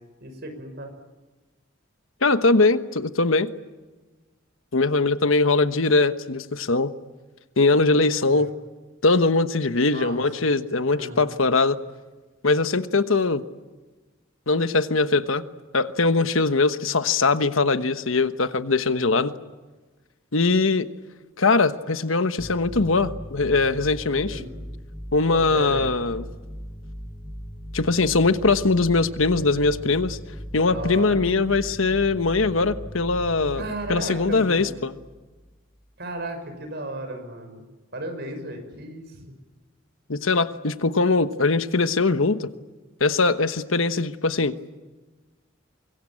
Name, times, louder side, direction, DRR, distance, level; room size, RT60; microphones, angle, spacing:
voice 1, 0.2-0.9 8.3-8.5 9.9-10.2 10.8-11.2 24.2-24.5 25.3-25.9 30.6-31.2 33.6-34.8 36.0-37.6 37.9-39.3, right 1 dB, 55° right, 6 dB, 5.8 m, -35 dB
voice 2, 2.2-3.5 4.7-6.9 7.6-8.5 9.0-11.8 12.4-13.4 14.5-15.4 15.7-19.3 20.3-20.9 21.4-24.4 25.1-26.2 27.7-30.2 30.5-33.6 33.9-34.9 40.1-42.5 43.0-44.5, left 3 dB, 80° left, 11 dB, 1.2 m, -21 dB
sound 1, 22.4-35.5, equal, 15° left, 5.3 m, -38 dB
25.0 x 23.0 x 8.7 m, 1.2 s
head